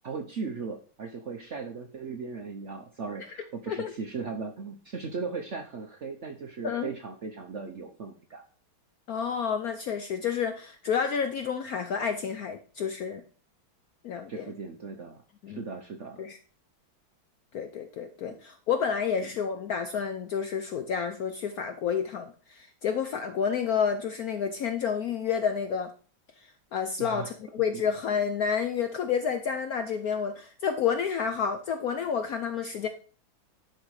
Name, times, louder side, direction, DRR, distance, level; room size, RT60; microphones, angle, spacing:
voice 1, 0.0-8.4 14.3-15.2 15.5-16.2 27.0-27.3 27.7-27.8, right 4 dB, 55° right, 4 dB, 0.8 m, -37 dB
voice 2, 9.1-13.2 14.0-14.5 15.4-15.6 16.2-16.4 17.5-25.9 26.7-32.9, left 7 dB, 70° left, 7 dB, 0.9 m, -30 dB
10.5 x 3.9 x 4.8 m, 0.40 s
omnidirectional pair, 2.2 m